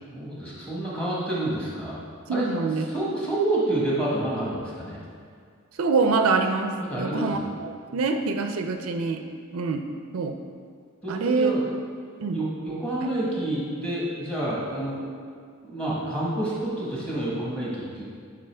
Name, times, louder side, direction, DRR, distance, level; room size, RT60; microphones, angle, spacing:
voice 1, 0.1-2.0 2.3-2.5 2.9-5.0 6.8-7.4 7.9-8.0 11.0-11.6 12.3-15.1 15.6-18.0, right 1 dB, 5° left, -7 dB, 1.2 m, -28 dB
voice 2, 2.3-2.9 5.8-9.2 9.5-9.8 10.1-10.4 11.1-11.5 12.2-12.4, right 4 dB, 70° right, 6 dB, 0.4 m, -25 dB
8.9 x 3.8 x 3.3 m, 2.1 s
head